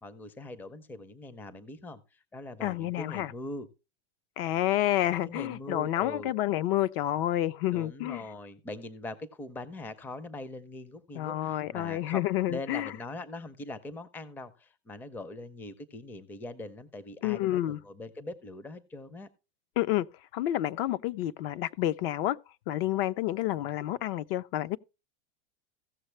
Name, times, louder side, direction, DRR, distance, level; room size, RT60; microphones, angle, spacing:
voice 1, 0.0-3.7 5.1-6.3 7.7-19.3, left 2 dB, 5° left, 0.4 m, -42 dB
voice 2, 2.6-3.3 4.4-8.2 11.1-12.9 17.2-17.8 19.8-20.1 20.3-22.4 22.7-24.8, left 14 dB, 65° left, 0.5 m, -29 dB
16.0 x 6.5 x 3.2 m
supercardioid pair, 150°, 33 cm